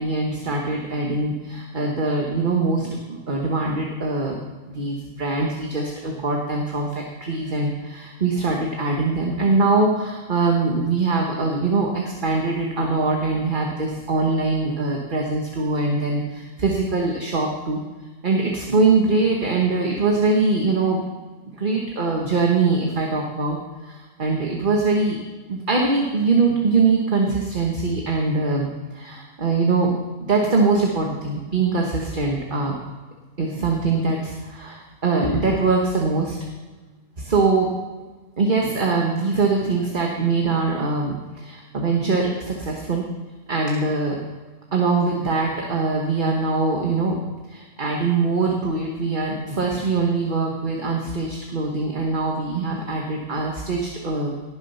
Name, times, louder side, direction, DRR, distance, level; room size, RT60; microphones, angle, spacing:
voice 1, 0.0-4.4 4.7-17.8 18.2-21.0 21.6-23.6 23.8-25.2 25.5-29.9 30.2-32.7 33.4-36.4 37.2-37.7 38.4-43.1 43.5-44.2 44.7-47.2 47.5-54.3, right 3 dB, 35° right, 0 dB, 1.5 m, -22 dB
18.5 x 7.3 x 5.7 m, 1.3 s
omnidirectional pair, 1.6 m